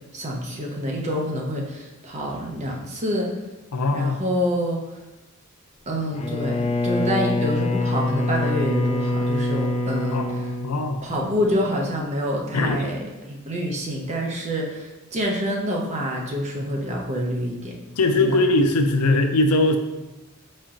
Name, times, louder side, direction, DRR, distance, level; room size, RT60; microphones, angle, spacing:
voice 1, 0.1-3.3 3.9-4.8 5.9-10.5 11.0-13.0 13.3-17.8 18.1-18.4, equal, 30° right, -1 dB, 0.7 m, -27 dB
voice 2, 3.7-4.2 10.1-10.3 10.6-11.0 12.5-12.8 18.0-19.8, left 2 dB, 85° left, 6 dB, 0.5 m, -20 dB
Bowed string instrument, 6.1-11.5, left 2 dB, 30° left, 0.3 m, -25 dB
4.4 x 4.3 x 2.5 m, 1.1 s
head